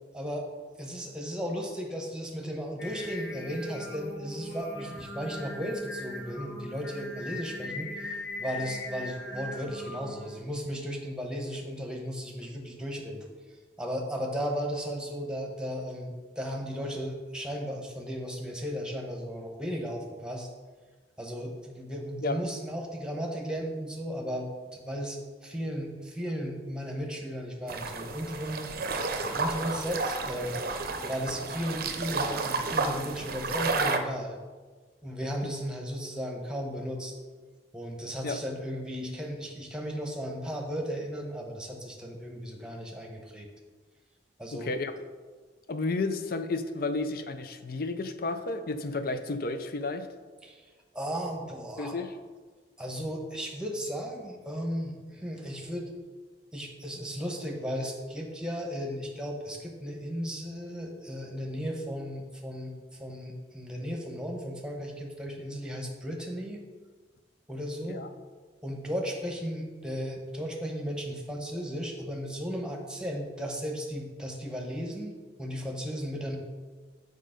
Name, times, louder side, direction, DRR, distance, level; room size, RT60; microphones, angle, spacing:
voice 1, 0.1-0.5 0.8-13.3 13.8-20.5 21.2-28.6 29.2-30.6 31.0-34.4 35.0-37.1 37.7-43.5 44.4-44.7 50.4-50.6 50.9-52.0 52.8-55.9 56.5-66.6 67.5-68.0 68.6-76.4, equal, 5° right, 1 dB, 1.0 m, -35 dB
Singing, 2.8-10.4, left 2 dB, 75° left, 1.0 m, -40 dB
sound 1, 27.7-34.0, right 3 dB, 55° right, 0.6 m, -31 dB
voice 2, 44.5-44.9 45.7-50.1 51.8-52.1 67.9-68.1, left 3 dB, 55° left, 9 dB, 0.6 m, -32 dB
6.6 x 5.1 x 5.1 m, 1.4 s
head